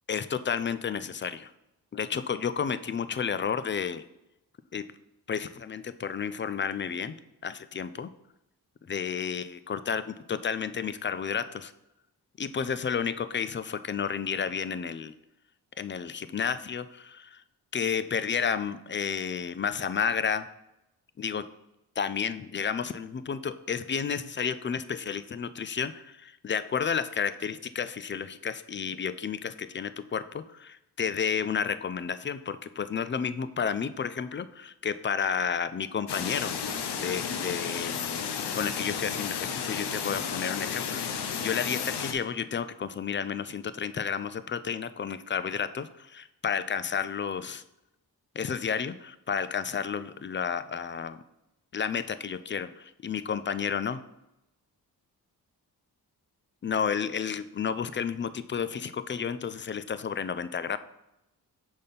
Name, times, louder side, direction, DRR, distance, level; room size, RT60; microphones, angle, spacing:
voice 1, 0.1-1.5 1.9-4.0 4.7-4.9 5.3-7.1 7.4-8.1 8.9-11.7 12.4-15.1 15.8-17.4 17.7-20.5 21.2-21.5 22.0-38.0 38.5-47.6 48.4-51.2 51.7-54.0 56.6-60.8, left 7 dB, 30° left, 14 dB, 0.4 m, -31 dB
sound 1, 36.1-42.1, left 7 dB, 85° left, 0.7 m, -32 dB
5.2 x 4.2 x 5.2 m, 0.88 s
cardioid pair, 70°, 39 cm